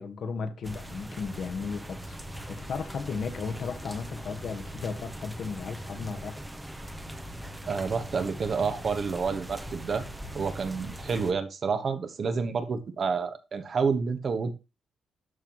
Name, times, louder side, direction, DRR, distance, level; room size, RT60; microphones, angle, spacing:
voice 1, 0.0-6.4, left 5 dB, 55° left, 1.4 m, -35 dB
sound 1, 0.6-11.3, right 1 dB, 5° right, 0.9 m, -41 dB
voice 2, 7.7-10.0 10.3-14.5, right 5 dB, 40° right, 1.2 m, -29 dB
12.5 x 4.5 x 3.0 m
cardioid pair, 130°, 0 cm